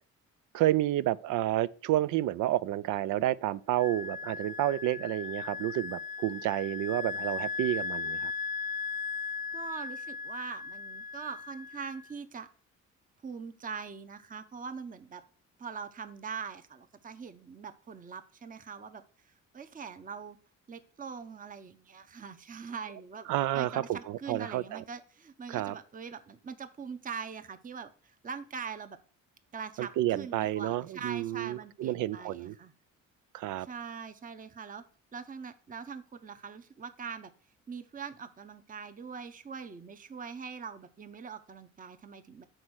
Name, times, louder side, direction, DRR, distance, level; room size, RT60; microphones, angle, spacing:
voice 1, 0.5-8.3 23.3-24.8 25.5-25.7 29.8-32.5 33.3-33.7, right 14 dB, 85° right, 0.5 m, -30 dB
Wind instrument woodwind instrument, 3.8-12.1, left 5 dB, 25° left, 0.7 m, -37 dB
voice 2, 9.5-12.5 13.2-15.2 15.6-20.4 20.7-23.3 23.5-29.0 29.5-32.7 33.6-34.8 35.1-37.3 37.7-42.4, right 6 dB, 25° right, 0.8 m, -42 dB
7.8 x 4.3 x 6.3 m
cardioid pair, 90°, 30 cm